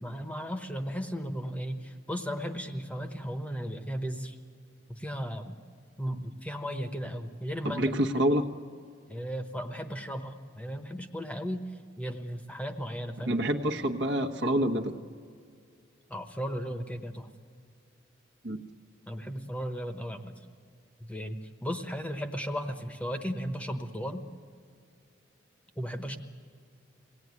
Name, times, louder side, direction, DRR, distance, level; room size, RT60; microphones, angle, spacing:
voice 1, 0.0-4.4 4.9-5.6 6.0-7.8 9.1-13.3 16.1-17.3 19.1-20.3 21.0-24.2 25.8-26.2, equal, 5° left, 7 dB, 1.0 m, -35 dB
voice 2, 7.6-8.5 13.3-15.0 18.4-18.6, equal, 60° right, 3 dB, 1.2 m, -27 dB
23.0 x 17.5 x 9.6 m, 2.3 s
head